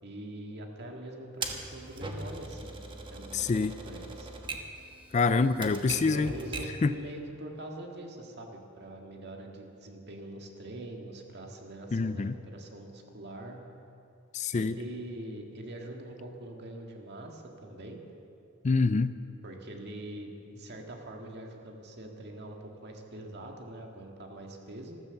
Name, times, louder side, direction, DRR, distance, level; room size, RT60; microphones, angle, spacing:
voice 1, 0.0-2.8 3.1-4.3 5.8-13.6 14.5-18.0 19.4-25.0, right 1 dB, 50° right, 2 dB, 1.9 m, -43 dB
Typewriter, 1.4-6.8, right 3 dB, 20° right, 1.2 m, -40 dB
voice 2, 3.3-3.7 5.1-6.3 6.8-6.9 11.9-12.3 14.3-14.7 18.6-19.1, left 4 dB, 30° left, 13 dB, 0.4 m, -26 dB
14.0 x 13.5 x 7.0 m, 2.7 s
head